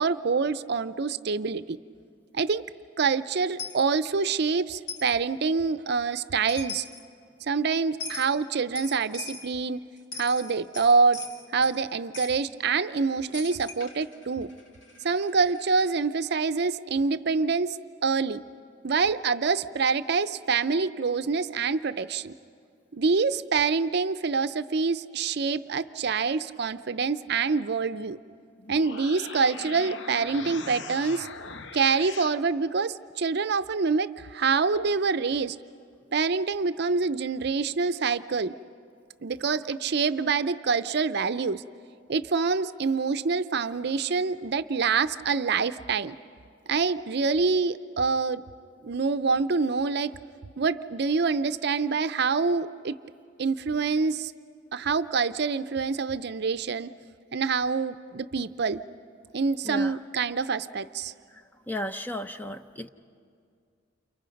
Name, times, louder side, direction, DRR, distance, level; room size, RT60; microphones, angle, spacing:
voice 1, 0.0-1.8 2.3-2.6 3.0-6.8 7.4-9.8 10.2-11.2 11.5-14.5 15.0-17.8 18.0-18.4 18.8-22.3 22.9-28.2 28.7-31.3 31.7-35.6 36.1-38.5 39.2-41.6 42.1-46.2 46.7-48.4 48.8-50.1 50.6-53.0 53.4-54.3 54.7-57.0 57.3-58.8 59.3-61.1, right 4 dB, 60° right, 12 dB, 0.6 m, -26 dB
Coin (dropping), 3.6-3.8 4.9-5.1 6.2-6.3 6.5-7.0 8.0-8.3 8.8-9.5 10.0-11.8 12.1-12.4 13.3-16.0, left 4 dB, 70° left, 2.4 m, -40 dB
sound 1, 28.6-32.4, left 4 dB, 90° left, 1.0 m, -40 dB
voice 2, 61.7-62.9, left 1 dB, 10° left, 7 dB, 0.7 m, -34 dB
29.5 x 29.0 x 5.2 m, 2.3 s
head